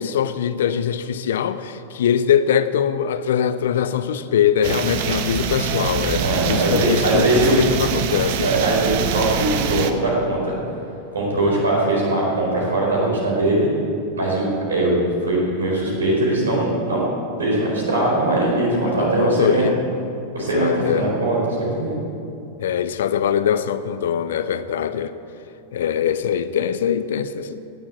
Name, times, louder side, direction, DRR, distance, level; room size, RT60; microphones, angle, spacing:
voice 1, 0.0-8.5 18.9-19.8 20.4-21.1 22.6-25.1 25.7-27.6, left 8 dB, 60° left, 12 dB, 0.6 m, -22 dB
sound 1, 4.6-9.9, right 7 dB, 50° right, 1.0 m, -24 dB
voice 2, 6.2-7.5 8.4-10.6 11.1-13.7 14.2-17.0 17.4-19.7 20.3-21.9, right 2 dB, 70° right, -3 dB, 4.4 m, -21 dB
17.5 x 7.4 x 8.5 m, 2.7 s
figure-of-eight pair, 90°, 0 cm